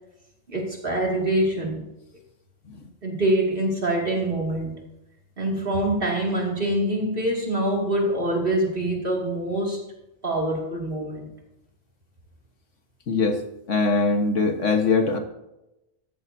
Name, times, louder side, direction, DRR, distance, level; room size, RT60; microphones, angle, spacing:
voice 1, 0.5-1.8 3.0-4.7 5.4-9.8 10.2-11.3, right 1 dB, 50° right, -1 dB, 2.6 m, -25 dB
voice 2, 13.1-13.4 13.7-15.2, left 3 dB, 80° left, 5 dB, 1.8 m, -21 dB
14.0 x 13.5 x 2.7 m, 0.92 s
omnidirectional pair, 1.2 m